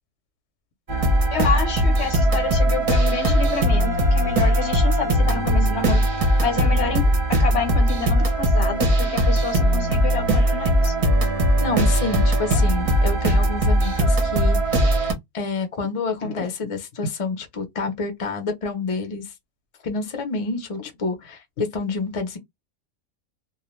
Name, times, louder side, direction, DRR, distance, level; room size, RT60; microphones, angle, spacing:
sound 1, 0.9-15.1, right 1 dB, 35° right, 0.5 m, -19 dB
voice 1, 1.3-6.1 6.4-10.9 16.2-16.5, left 6 dB, 60° left, 0.8 m, -28 dB
voice 2, 11.6-14.9 15.3-19.3 19.8-22.4, left 3 dB, 40° left, 0.5 m, -28 dB
2.4 x 2.1 x 3.0 m
omnidirectional pair, 1.4 m